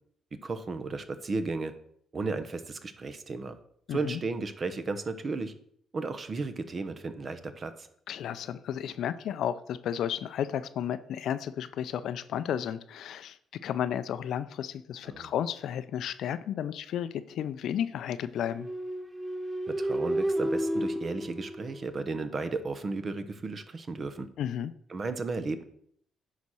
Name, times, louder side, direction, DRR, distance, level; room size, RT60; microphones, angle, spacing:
voice 1, 0.3-1.7 2.1-3.6 3.9-5.5 5.9-7.9 15.0-15.3 19.7-24.3 24.9-25.6, right 3 dB, 40° right, 10 dB, 0.9 m, -34 dB
voice 2, 3.9-4.2 8.1-13.4 13.6-18.7 24.4-24.7, left 9 dB, 75° left, 13 dB, 0.5 m, -33 dB
sound 1, 18.4-22.3, right 1 dB, 10° right, 0.5 m, -32 dB
9.5 x 4.2 x 6.2 m, 0.66 s
cardioid pair, 90°, 0 cm